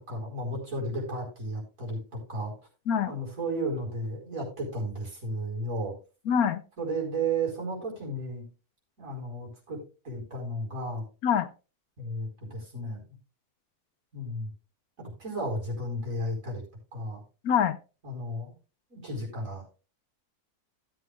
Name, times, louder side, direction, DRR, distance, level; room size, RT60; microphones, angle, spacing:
voice 1, 0.1-2.5 3.1-5.9 6.8-8.5 9.0-9.8 10.0-11.0 12.0-13.0 14.1-14.5 15.2-16.6 16.9-17.2 18.0-18.5 18.9-19.6, right 1 dB, 60° right, -2 dB, 5.2 m, -33 dB
voice 2, 6.3-6.6 11.2-11.5 17.4-17.8, left 8 dB, 75° left, 13 dB, 1.2 m, -24 dB
16.5 x 7.9 x 2.4 m, 0.31 s
omnidirectional pair, 1.6 m